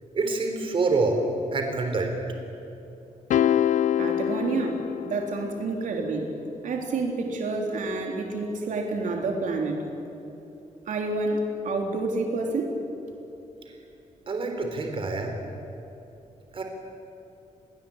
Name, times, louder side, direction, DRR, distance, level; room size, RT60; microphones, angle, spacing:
voice 1, 0.1-1.2 1.5-2.1 14.3-15.3 16.5-16.6, right 3 dB, 40° right, 4 dB, 3.9 m, -26 dB
sound 1, 3.3-5.7, left 10 dB, 70° left, 0.5 m, -25 dB
voice 2, 4.0-6.3 6.6-9.8 10.9-12.8, right 3 dB, 75° right, 2 dB, 3.6 m, -29 dB
30.0 x 21.5 x 8.8 m, 2.9 s
wide cardioid pair, 165°, 13 cm